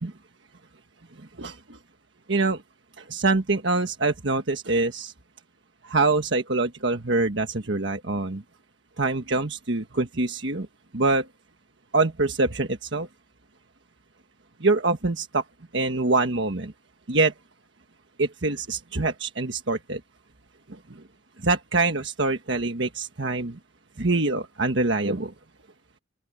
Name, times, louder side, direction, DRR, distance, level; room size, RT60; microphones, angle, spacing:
voice 1, 1.4-1.8 2.3-2.6 3.0-5.1 5.8-8.4 9.0-10.7 10.9-11.3 11.9-13.1 14.6-15.4 15.7-16.7 17.1-17.3 18.2-20.0 20.7-21.0 21.4-23.6 24.0-25.3, right 3 dB, 65° right, 1.4 m, -25 dB
open air
head